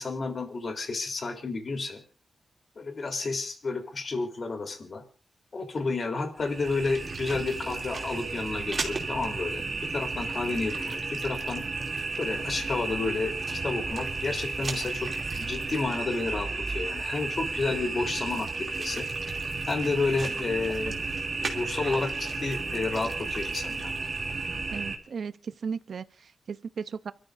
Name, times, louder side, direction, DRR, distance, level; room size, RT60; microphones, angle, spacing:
voice 1, 0.0-2.0 2.8-5.0 5.5-11.6 12.2-19.1 19.7-21.0 21.4-23.9, left 3 dB, 50° left, 3.5 m, -31 dB
sound 1, 6.4-25.0, right 3 dB, 50° right, 2.7 m, -33 dB
voice 2, 24.7-27.1, right 6 dB, 65° right, 0.7 m, -36 dB
29.0 x 13.0 x 2.6 m
wide cardioid pair, 115°, 0 cm